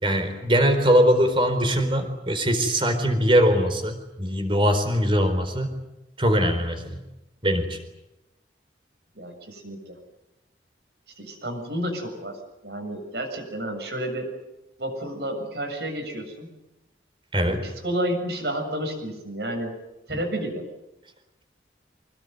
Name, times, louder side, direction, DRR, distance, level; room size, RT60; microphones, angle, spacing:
voice 1, 0.0-5.7 6.2-7.0 7.4-7.8 17.3-17.7 20.1-20.2, equal, 30° right, 7 dB, 4.2 m, -21 dB
voice 2, 9.1-10.0 11.2-12.4 12.6-14.3 14.8-16.5 17.4-19.8 20.1-20.7, right 1 dB, 70° right, 4 dB, 7.3 m, -31 dB
26.0 x 20.5 x 9.4 m, 0.96 s
head